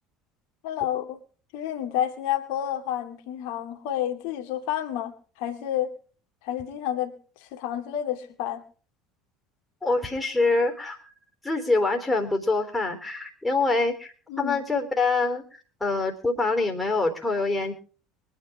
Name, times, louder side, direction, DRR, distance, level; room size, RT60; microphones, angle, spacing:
voice 1, 0.6-1.2 1.5-5.1 5.4-5.9 6.4-7.1 7.5-8.6 14.3-14.6, left 11 dB, 55° left, 2.2 m, -29 dB
voice 2, 9.8-11.0 11.4-15.4 15.8-17.7, left 3 dB, 10° left, 3.6 m, -25 dB
24.0 x 10.0 x 3.6 m
figure-of-eight pair, 65°, 0 cm